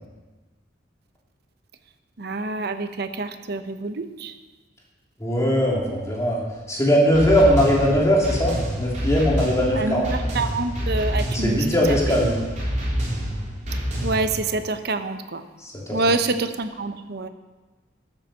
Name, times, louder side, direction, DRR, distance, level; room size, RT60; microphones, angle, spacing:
voice 1, 2.2-4.3 9.7-12.0 14.0-15.4 15.9-17.3, right 3 dB, 60° right, 9 dB, 0.9 m, -27 dB
voice 2, 5.2-6.4 6.7-10.1 11.3-12.3 15.6-16.0, equal, 15° left, -4 dB, 2.9 m, -20 dB
sound 1, 7.1-14.3, equal, 45° right, 3.6 m, -27 dB
13.5 x 7.4 x 6.5 m, 1.2 s
head